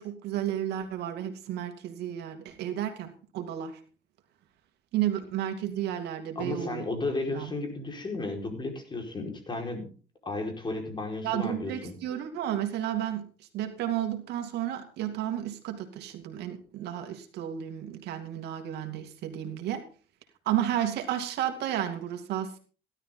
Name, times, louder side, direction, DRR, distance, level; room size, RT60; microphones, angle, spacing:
voice 1, 0.0-3.8 4.9-6.9 7.3-7.5 11.2-13.3 13.5-19.8 20.5-22.6, right 11 dB, 80° right, 6 dB, 2.6 m, -32 dB
voice 2, 6.3-9.9 10.2-12.0, left 2 dB, 25° left, 3 dB, 5.1 m, -34 dB
16.5 x 12.5 x 3.9 m, 0.39 s
cardioid pair, 110°, 17 cm